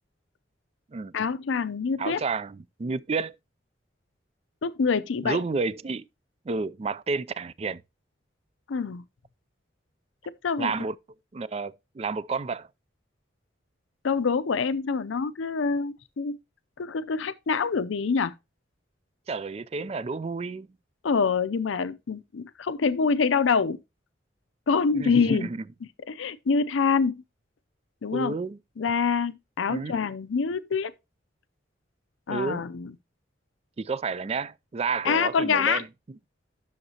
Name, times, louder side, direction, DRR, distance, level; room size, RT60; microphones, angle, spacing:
voice 1, 1.1-2.2 4.6-5.4 8.7-9.0 10.4-10.7 14.0-16.4 16.8-18.3 21.0-23.8 24.7-25.5 26.1-27.2 28.0-28.3 28.8-30.9 32.3-32.9 35.0-35.8, left 5 dB, 85° left, 0.5 m, -25 dB
voice 2, 2.0-3.3 5.2-6.1 6.5-7.8 10.6-10.9 11.3-12.7 19.3-20.7 24.9-25.6 28.1-28.6 29.7-29.9 32.3-32.6 33.8-35.9, right 4 dB, 30° right, 0.3 m, -30 dB
11.0 x 6.4 x 2.8 m
head